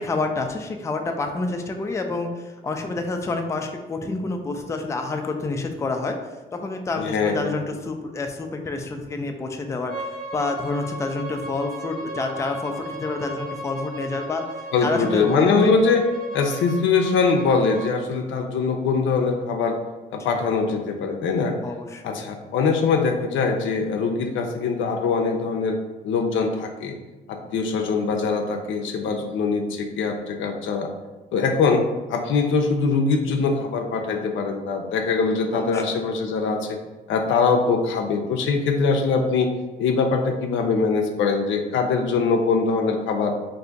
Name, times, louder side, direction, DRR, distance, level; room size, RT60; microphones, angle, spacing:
voice 1, 0.0-6.2 6.5-10.1 10.3-14.4 14.8-15.7 20.3-20.4 21.6-22.2 35.5-35.8, left 3 dB, 15° left, 4 dB, 0.3 m, -28 dB
voice 2, 7.0-7.6 14.7-16.0 16.3-19.8 20.1-21.6 22.0-25.8 26.0-26.9 27.3-30.9 31.3-36.8 37.1-39.5 39.8-43.3, left 4 dB, 75° left, 4 dB, 0.5 m, -22 dB
Bowed string instrument, 9.9-17.9, right 1 dB, 50° right, 0.9 m, -36 dB
2.6 x 2.4 x 3.9 m, 1.1 s
cardioid pair, 90°, 20 cm